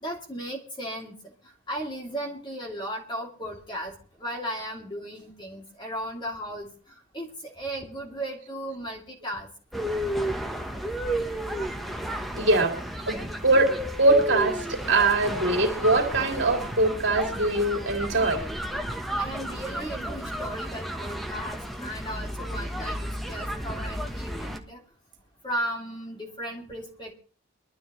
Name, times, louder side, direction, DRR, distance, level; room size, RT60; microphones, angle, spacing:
voice 1, 0.0-9.5 19.2-24.8 25.4-27.1, right 1 dB, 20° left, 2.6 m, -36 dB
sound 1, 9.7-24.6, equal, ahead, 1.1 m, -32 dB
voice 2, 12.3-12.8 13.1-18.4, right 2 dB, 55° right, 2.9 m, -22 dB
22.5 x 12.5 x 3.1 m
head